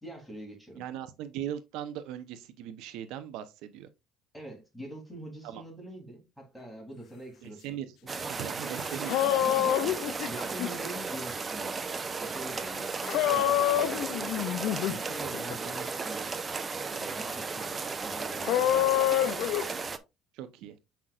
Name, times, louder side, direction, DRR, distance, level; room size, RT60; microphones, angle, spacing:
voice 1, 0.0-0.8 4.3-8.1 8.9-11.7 12.2-14.5 14.8-16.3 16.9-19.2, right 1 dB, 5° left, 3.3 m, -45 dB
voice 2, 0.8-3.9 5.4-5.6 7.4-9.2 20.3-20.8, right 11 dB, 80° right, 0.8 m, -39 dB
sound 1, 8.1-20.0, right 4 dB, 25° right, 0.8 m, -35 dB
sound 2, 8.6-8.7 8.9-10.7 13.0-15.0 15.3-15.6 18.4-19.7, left 13 dB, 75° left, 0.5 m, -27 dB
7.6 x 5.8 x 2.4 m
cardioid pair, 115°, 0 cm